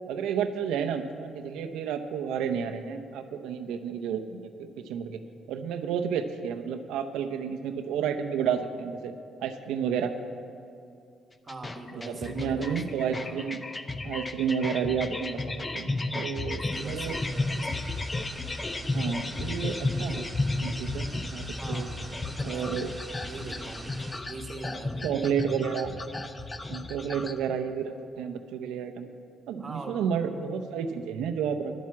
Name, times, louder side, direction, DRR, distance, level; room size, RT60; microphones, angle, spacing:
voice 1, 0.1-5.2 5.5-9.1 9.4-10.1 11.9-13.6 14.0-17.2 17.7-17.8 18.9-20.3 20.6-21.9 22.4-22.9 25.0-25.9 26.7-29.1 29.5-31.7, right 7 dB, 90° right, 8 dB, 0.7 m, -31 dB
sound 1, 11.5-27.4, left 2 dB, 25° left, 0.6 m, -33 dB
voice 2, 11.5-13.5 16.4-17.9 21.5-22.8 23.2-25.3 29.6-30.0, right 2 dB, 30° right, 4 dB, 1.5 m, -42 dB
sound 2, 16.7-24.2, right 1 dB, 15° right, 2.0 m, -44 dB
10.5 x 7.6 x 8.4 m, 2.5 s
cardioid pair, 90°, 0 cm